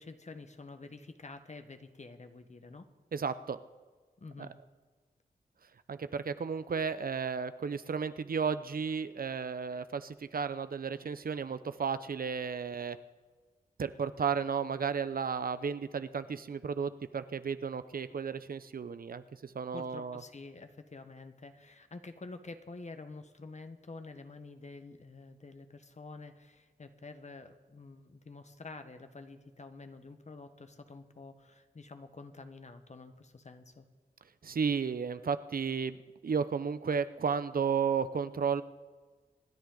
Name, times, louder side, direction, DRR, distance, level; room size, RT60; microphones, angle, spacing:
voice 1, 0.0-2.9 4.2-4.5 19.7-33.8, left 3 dB, 45° left, 8 dB, 1.3 m, -48 dB
voice 2, 3.1-3.6 4.4-4.5 5.9-13.0 13.8-20.2 34.4-38.6, right 6 dB, 65° right, 13 dB, 0.7 m, -33 dB
26.0 x 10.0 x 3.9 m, 1.4 s
cardioid pair, 65°, 16 cm